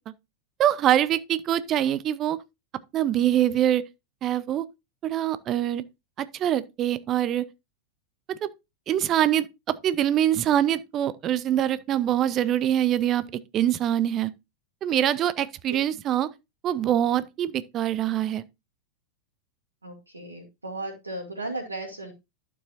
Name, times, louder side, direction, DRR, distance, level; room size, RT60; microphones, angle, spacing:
voice 1, 0.6-2.4 2.9-3.8 4.2-4.6 5.0-5.8 6.2-7.5 8.3-8.5 8.9-13.2 13.5-14.3 14.8-16.3 16.6-18.4, right 11 dB, 30° right, 0.7 m, -24 dB
voice 2, 19.8-22.1, right 2 dB, 80° right, 2.1 m, -35 dB
12.0 x 7.1 x 2.6 m
figure-of-eight pair, 90°, 0 cm